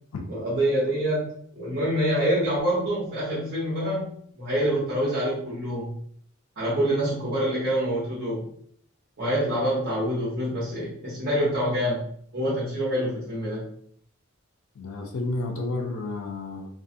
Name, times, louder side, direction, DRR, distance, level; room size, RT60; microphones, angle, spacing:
voice 1, 0.3-1.2 1.5-5.9 6.6-8.5 9.2-12.1 12.3-13.6, equal, 55° right, -8 dB, 0.9 m, -26 dB
voice 2, 14.8-16.7, left 2 dB, 90° left, 3 dB, 0.4 m, -31 dB
2.4 x 2.3 x 2.6 m, 0.63 s
head